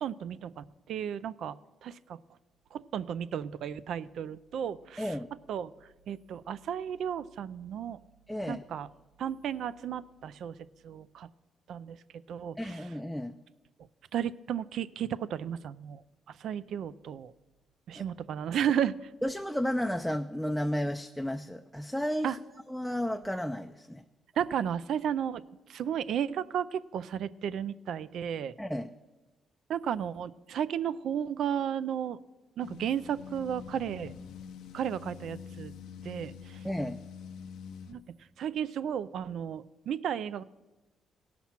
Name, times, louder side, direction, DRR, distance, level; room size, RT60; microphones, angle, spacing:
voice 1, 0.0-1.6 1.8-2.2 2.7-5.1 5.5-5.7 6.1-8.0 8.5-8.9 9.2-10.5 10.8-11.3 11.7-12.0 12.3-12.8 14.1-16.0 16.4-17.3 17.9-18.9 22.2-22.4 24.4-25.4 25.7-28.5 29.7-32.2 32.6-34.1 34.7-35.7 36.0-36.6 37.9-38.0 38.4-40.4, right 9 dB, 70° right, 17 dB, 0.4 m, -33 dB
voice 2, 5.0-5.3 8.3-8.6 12.6-13.4 18.0-18.1 19.2-22.4 22.7-24.0 28.6-28.9 36.6-37.0, equal, 5° left, 6 dB, 0.4 m, -32 dB
sound 1, 32.6-38.0, left 7 dB, 85° left, 0.6 m, -45 dB
16.5 x 5.9 x 5.7 m, 1.1 s
cardioid pair, 90°, 0 cm